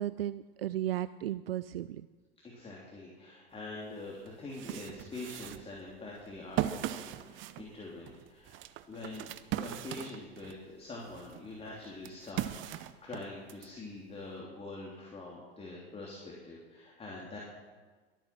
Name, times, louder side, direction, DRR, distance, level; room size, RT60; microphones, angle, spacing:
voice 1, 0.0-2.1, right 12 dB, 80° right, 16 dB, 0.5 m, -35 dB
voice 2, 2.5-8.5 8.9-17.4, left 2 dB, 20° left, -3 dB, 3.4 m, -45 dB
sound 1, 3.7-3.8 4.3-10.6 11.1-13.7, right 13 dB, 40° right, 0.9 m, -39 dB
22.5 x 9.1 x 6.1 m, 1.4 s
figure-of-eight pair, 80°, 30 cm